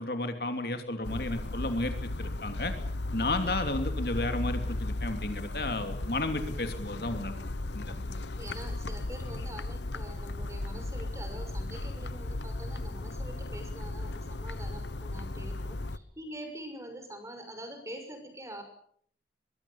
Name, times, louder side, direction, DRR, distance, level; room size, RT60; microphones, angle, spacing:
voice 1, 0.0-2.7 3.1-7.3 7.7-7.9, left 2 dB, 60° left, 7 dB, 2.9 m, -33 dB
sound 1, 1.0-16.0, left 2 dB, 80° left, 1.1 m, -36 dB
voice 2, 7.9-18.6, right 1 dB, 15° right, 6 dB, 6.1 m, -45 dB
24.0 x 23.0 x 7.2 m, 0.63 s
head